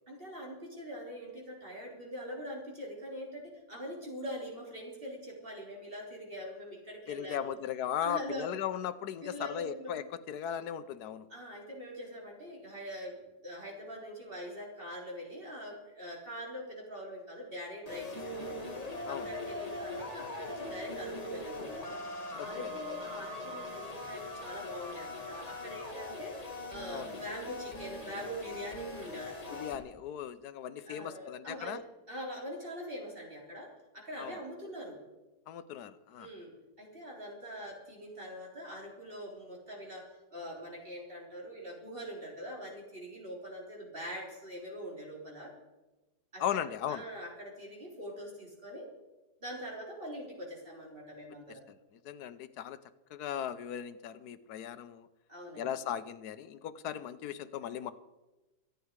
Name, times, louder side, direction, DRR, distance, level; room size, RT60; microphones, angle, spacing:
voice 1, 0.1-7.6 8.0-8.5 9.2-10.1 11.3-18.6 19.1-22.0 22.4-29.6 30.9-35.0 36.2-45.5 46.3-48.9 49.4-51.6 55.3-55.7, equal, 30° right, -2 dB, 4.0 m, -43 dB
voice 2, 7.1-11.3 19.1-19.3 22.3-22.7 26.9-27.2 29.5-31.8 34.2-34.4 35.5-36.3 46.4-47.0 51.7-51.8 52.0-52.8 53.1-55.1 55.5-57.9, left 9 dB, 65° left, 12 dB, 1.2 m, -37 dB
sound 1, 17.9-29.8, left 2 dB, 20° left, 1.8 m, -41 dB
25.5 x 9.3 x 4.7 m, 1.1 s
omnidirectional pair, 2.0 m